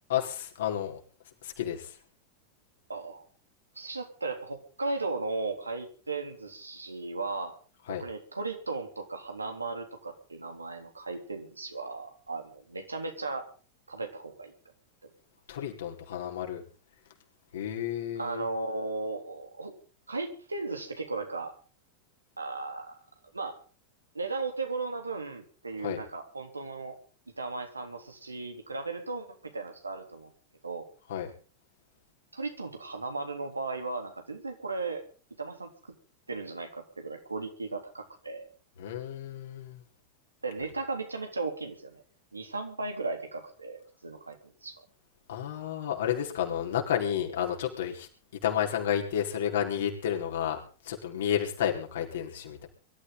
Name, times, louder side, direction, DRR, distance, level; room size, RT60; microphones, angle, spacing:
voice 1, 0.1-1.0 1.4-2.0 7.9-8.0 15.5-16.6 17.5-18.5 25.8-26.0 31.1-31.3 38.8-39.8 45.3-48.1 48.4-52.7, left 9 dB, 60° left, 1 dB, 4.8 m, -31 dB
voice 2, 2.9-3.2 3.8-7.6 8.0-13.5 13.9-14.5 18.2-19.7 20.1-21.5 22.4-23.0 23.3-23.6 24.1-27.0 27.4-29.3 29.5-30.3 30.6-30.9 32.3-35.0 35.4-35.7 36.3-38.4 40.4-42.0 42.3-44.8, right 3 dB, 80° right, 4 dB, 3.6 m, -36 dB
23.5 x 13.5 x 4.0 m, 0.39 s
figure-of-eight pair, 90°, 0 cm